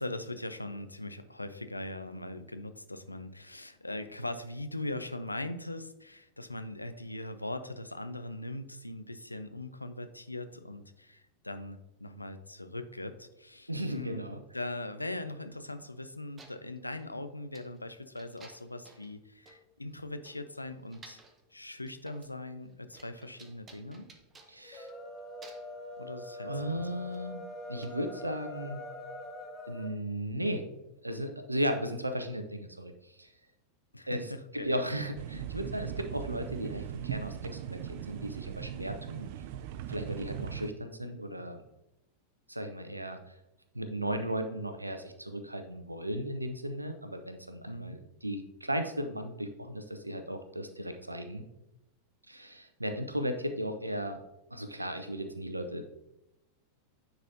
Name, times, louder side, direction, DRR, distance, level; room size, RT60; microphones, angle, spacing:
voice 1, 0.0-14.2 14.5-21.2 21.5-24.0 26.0-26.8 33.9-34.8 47.7-48.0, left 2 dB, 85° left, 9 dB, 0.4 m, -40 dB
voice 2, 13.7-14.4 24.5-24.9 26.4-27.4 27.7-28.8 29.7-30.6 31.0-33.3 34.1-34.3 34.5-39.3 39.9-41.6 42.5-43.3 43.7-51.5 52.3-54.2 54.5-55.8, equal, 85° right, 8 dB, 0.6 m, -36 dB
sound 1, 16.0-16.1 16.4-17.1 17.5-17.8 18.2-19.1 19.5-19.6 19.9-20.0 20.2-21.4 21.8-22.4 22.6-25.1 25.4-25.8 27.1-27.2 27.8-27.9, right 3 dB, 20° right, 0.8 m, -56 dB
sound 2, 24.6-29.9, left 1 dB, 25° left, 0.8 m, -43 dB
sound 3, 35.2-40.7, right 10 dB, 50° right, 0.3 m, -39 dB
9.5 x 4.0 x 2.7 m, 0.88 s
figure-of-eight pair, 90°, 0 cm